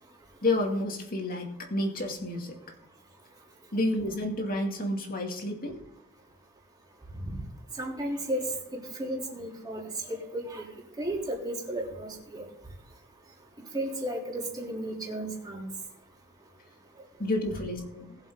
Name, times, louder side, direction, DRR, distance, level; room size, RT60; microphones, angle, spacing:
voice 1, 0.4-2.6 3.7-5.8 17.2-18.2, left 1 dB, 40° left, 2 dB, 2.5 m, -30 dB
voice 2, 7.8-8.5 8.9-9.8 10.1-10.7 11.0-12.5 13.7-15.7, right 1 dB, 20° right, -2 dB, 3.4 m, -34 dB
20.0 x 7.4 x 3.9 m, 0.79 s
head